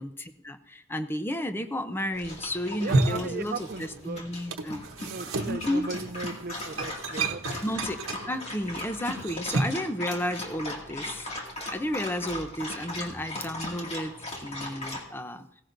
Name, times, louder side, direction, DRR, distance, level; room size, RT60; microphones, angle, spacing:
voice 1, 0.0-4.8 5.5-5.8 7.6-8.0 8.3-11.3 11.7-14.1 14.4-15.5, left 1 dB, 10° left, 9 dB, 0.6 m, -32 dB
Dog, 2.1-15.0, left 1 dB, 30° left, 2.2 m, -38 dB
sound 1, 2.7-4.1 4.3-9.9, right 2 dB, 90° right, 1.0 m, -31 dB
voice 2, 2.8-4.2 5.0-7.6, right 4 dB, 50° right, 12 dB, 0.6 m, -37 dB
17.0 x 16.0 x 2.6 m, 0.74 s
head